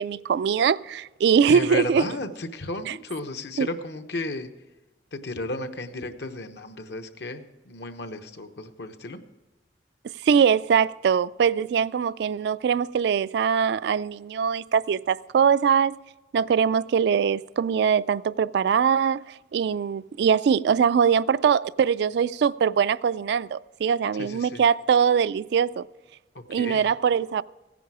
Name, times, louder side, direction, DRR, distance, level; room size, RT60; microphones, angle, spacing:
voice 1, 0.0-2.0 2.9-3.0 3.6-3.7 10.2-16.0 16.3-25.8 26.5-27.4, right 7 dB, 65° right, 0.3 m, -22 dB
voice 2, 1.5-4.5 5.1-9.2 24.1-24.6 26.3-26.9, left 2 dB, 70° left, 1.0 m, -34 dB
15.5 x 10.0 x 4.8 m
head